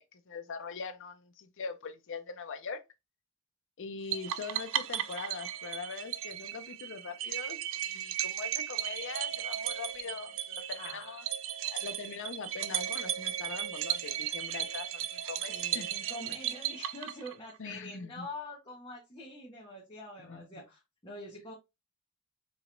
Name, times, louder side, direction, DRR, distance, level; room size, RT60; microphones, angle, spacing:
voice 1, 0.0-2.8 3.8-11.2 11.7-15.9 17.6-18.3 20.2-20.4, left 4 dB, 60° left, 0.6 m, -42 dB
sound 1, 4.1-17.6, right 11 dB, 65° right, 0.4 m, -36 dB
voice 2, 10.8-11.2 15.5-21.5, left 1 dB, 25° left, 1.2 m, -45 dB
4.8 x 2.9 x 2.5 m
head